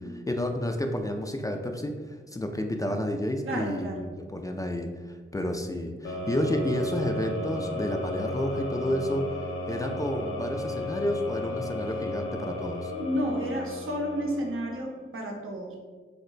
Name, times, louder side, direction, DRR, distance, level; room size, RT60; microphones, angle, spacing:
voice 1, 0.3-9.3 9.7-12.9, left 1 dB, 15° left, 4 dB, 0.3 m, -30 dB
voice 2, 3.4-4.1 12.9-15.8, equal, 75° right, 0 dB, 0.7 m, -31 dB
sound 1, 6.0-15.0, left 1 dB, 75° left, 0.5 m, -34 dB
2.7 x 2.2 x 3.8 m, 1.4 s
cardioid pair, 55°, 21 cm